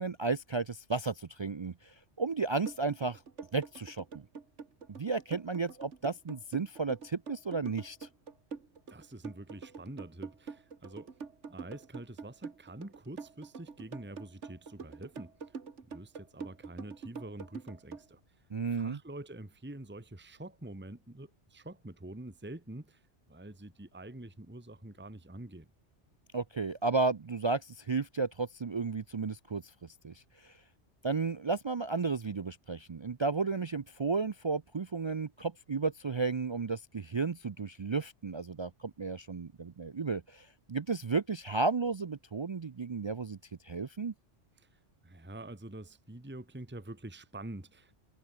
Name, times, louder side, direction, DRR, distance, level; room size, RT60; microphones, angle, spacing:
voice 1, 0.0-3.2 3.5-4.2 4.9-8.1 18.5-19.0 26.3-30.6 31.0-43.4 43.6-44.1, right 4 dB, 45° right, 0.3 m, -33 dB
sound 1, 2.6-18.0, right 5 dB, 80° right, 2.1 m, -45 dB
voice 2, 8.9-11.2 11.5-15.6 15.9-18.2 18.7-23.0 23.3-25.7 44.6-48.0, right 1 dB, 10° right, 1.5 m, -46 dB
omnidirectional pair, 1.2 m